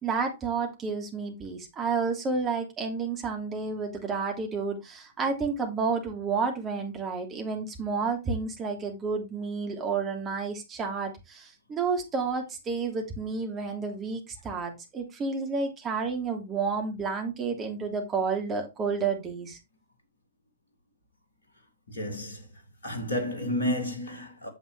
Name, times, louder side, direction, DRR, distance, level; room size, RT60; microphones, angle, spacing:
voice 1, 0.0-19.6, right 4 dB, 20° right, 2.8 m, -30 dB
voice 2, 21.9-22.5 22.8-24.5, left 1 dB, 70° left, 2.4 m, -31 dB
9.0 x 7.2 x 3.3 m
figure-of-eight pair, 105°, 0 cm